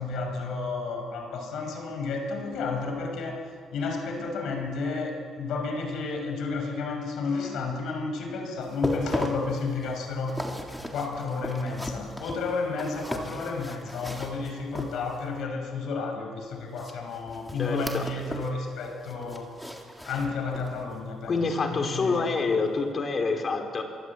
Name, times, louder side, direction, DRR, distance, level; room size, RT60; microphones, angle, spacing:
voice 1, 0.0-3.4 3.7-10.5 10.9-19.5 20.0-22.4, left 4 dB, 80° left, 4 dB, 6.1 m, -32 dB
sound 1, 8.6-15.4 16.7-18.6 18.8-20.8 21.2-21.4 21.9-22.0, equal, 5° left, 3.7 m, -37 dB
voice 2, 17.6-18.1 21.3-23.8, left 4 dB, 45° left, 4 dB, 4.5 m, -27 dB
26.0 x 23.5 x 8.7 m, 2.2 s
cardioid pair, 90°, 0 cm